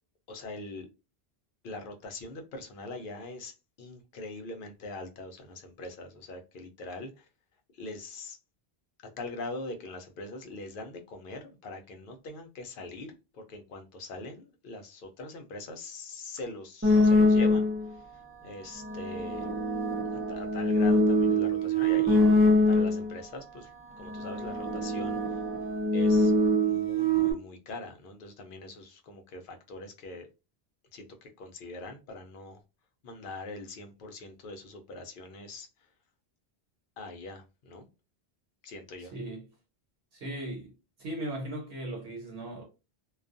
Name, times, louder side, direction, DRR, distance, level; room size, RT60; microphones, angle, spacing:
voice 1, 0.3-0.9 1.6-3.5 3.8-7.3 7.8-8.4 9.2-17.6 18.4-19.5 20.1-22.2 22.7-23.7 24.0-25.2 25.9-26.3 26.6-30.3 30.9-32.6 33.0-35.7 37.0-37.9 38.6-39.1, left 2 dB, 60° left, 0.7 m, -42 dB
sound 1, 16.8-17.9 18.7-23.2 23.9-27.3, left 1 dB, 20° right, 0.4 m, -24 dB
voice 2, 39.1-39.5 40.1-40.7 41.0-42.6, right 1 dB, 75° right, 1.1 m, -37 dB
2.3 x 2.3 x 2.5 m
omnidirectional pair, 1.1 m